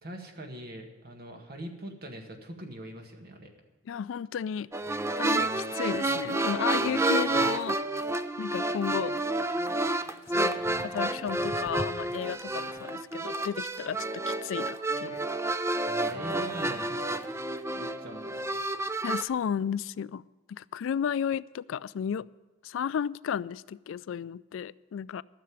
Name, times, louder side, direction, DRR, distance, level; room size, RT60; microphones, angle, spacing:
voice 1, 0.0-3.5 15.9-17.5 17.8-18.6, equal, 50° right, 1.8 m, -43 dB
voice 2, 3.9-4.7 5.2-7.8 8.4-9.2 10.4-15.2 19.0-22.3 22.6-25.2, left 8 dB, 70° left, 0.3 m, -33 dB
sound 1, 4.7-19.2, right 2 dB, 15° right, 0.4 m, -30 dB
13.5 x 6.8 x 9.3 m
head